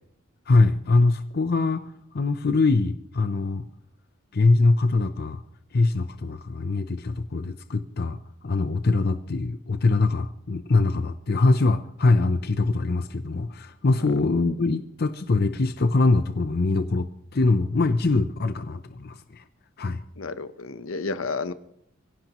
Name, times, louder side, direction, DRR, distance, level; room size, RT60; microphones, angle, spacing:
voice 1, 0.5-1.9 2.1-3.7 4.3-5.4 5.7-8.2 8.4-19.4 19.8-20.0, left 3 dB, 50° left, 10 dB, 0.6 m, -23 dB
voice 2, 20.2-21.5, left 4 dB, 70° left, 12 dB, 0.9 m, -31 dB
24.0 x 16.5 x 3.0 m, 0.71 s
head